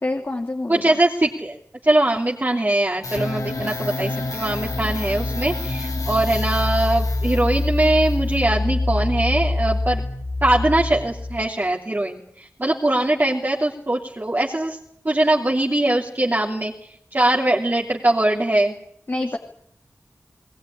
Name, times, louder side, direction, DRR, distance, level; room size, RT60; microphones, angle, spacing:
voice 1, 0.0-0.9 19.1-19.4, left 2 dB, 40° left, 2 dB, 2.6 m, -26 dB
voice 2, 0.7-1.6 1.8-10.0 10.4-14.8 15.0-16.7 17.1-18.7, right 1 dB, 35° right, -2 dB, 2.9 m, -21 dB
sound 1, 3.0-11.5, left 2 dB, 85° left, 3.7 m, -25 dB
20.5 x 20.0 x 10.0 m, 0.69 s
wide cardioid pair, 60°, 6 cm